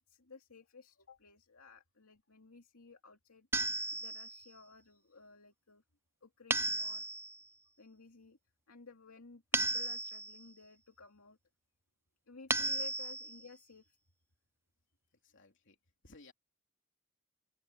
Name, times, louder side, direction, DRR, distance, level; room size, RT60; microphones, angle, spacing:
voice 1, 0.0-3.5 3.9-5.8 6.2-7.1 7.8-8.4 8.7-11.4 12.3-14.0, left 4 dB, 90° left, 2.5 m, -55 dB
sound 1, 3.5-4.4 6.5-7.4 9.5-10.4 12.5-13.4, right 2 dB, 10° right, 0.4 m, -34 dB
voice 2, 15.2-15.8 16.0-16.3, left 2 dB, 60° left, 3.6 m, -58 dB
open air
head